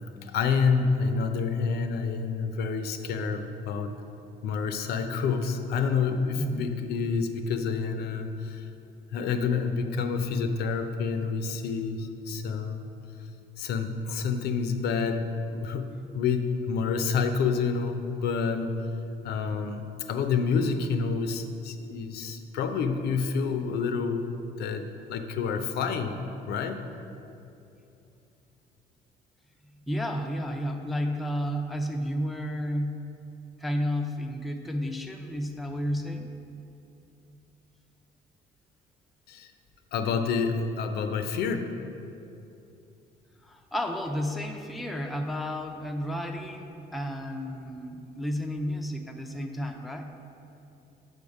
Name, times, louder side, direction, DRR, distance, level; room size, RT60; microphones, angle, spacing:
voice 1, 0.0-3.9 4.4-8.6 9.1-12.9 13.6-18.8 19.2-24.2 24.6-26.1 26.5-26.8 39.3-39.5 39.9-41.7, left 5 dB, 75° left, 8 dB, 0.5 m, -28 dB
voice 2, 6.4-6.7 29.7-33.2 33.6-36.3 43.4-50.1, equal, ahead, 3 dB, 0.4 m, -32 dB
6.3 x 3.5 x 5.2 m, 2.7 s
cardioid pair, 110°, 17 cm